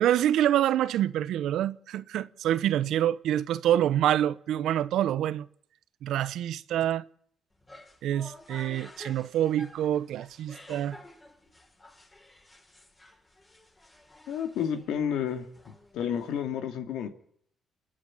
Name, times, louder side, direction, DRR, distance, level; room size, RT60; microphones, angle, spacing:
voice 1, 0.0-5.5 6.0-7.1 8.0-11.0, right 11 dB, 80° right, 0.8 m, -26 dB
sound 1, 7.5-16.5, left 2 dB, 25° left, 6.5 m, -52 dB
voice 2, 14.3-15.5 15.9-17.1, left 8 dB, 85° left, 2.5 m, -30 dB
28.5 x 10.0 x 9.9 m
cardioid pair, 90°, 0 cm